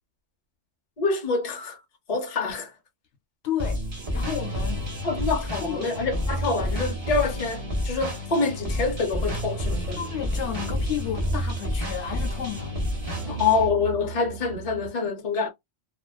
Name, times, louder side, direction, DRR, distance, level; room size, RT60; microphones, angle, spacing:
voice 1, 1.0-1.8 2.1-2.7 5.0-10.0 13.3-15.5, left 4 dB, 40° left, 0.7 m, -26 dB
voice 2, 3.4-4.9 5.6-5.9 10.0-12.7, left 10 dB, 70° left, 0.9 m, -32 dB
sound 1, 3.6-13.7, left 1 dB, 25° right, 0.8 m, -30 dB
sound 2, 4.0-14.9, right 9 dB, 65° right, 0.8 m, -41 dB
2.4 x 2.2 x 2.3 m
omnidirectional pair, 1.2 m